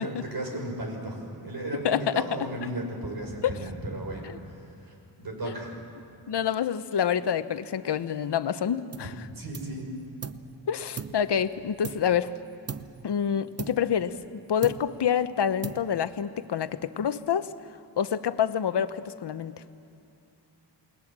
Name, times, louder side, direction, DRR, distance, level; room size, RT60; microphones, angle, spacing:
voice 1, 0.0-5.9 9.0-10.0, right 1 dB, 55° right, 1 dB, 5.9 m, -35 dB
voice 2, 1.8-2.2 5.4-5.5 6.3-9.1 10.7-12.3 13.0-14.2 14.5-17.5 18.0-19.6, left 8 dB, 70° left, 12 dB, 1.0 m, -27 dB
sound 1, 8.9-9.2 9.5-10.5 11.0-12.3 12.7-13.1 13.6-14.3 14.6-15.1 15.6-16.2, right 6 dB, 35° right, 0.8 m, -40 dB
28.5 x 20.0 x 7.4 m, 2.7 s
wide cardioid pair, 90°, 43 cm